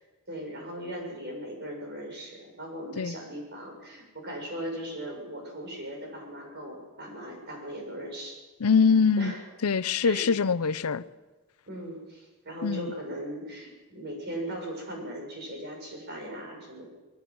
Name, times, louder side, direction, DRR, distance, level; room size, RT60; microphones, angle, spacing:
voice 1, 0.3-8.4 9.2-9.4 10.0-10.3 11.7-16.9, equal, 50° right, 6.8 m, -38 dB
voice 2, 8.6-9.3 9.6-11.0 12.6-12.9, left 5 dB, 85° left, 0.6 m, -23 dB
21.5 x 18.5 x 7.7 m
head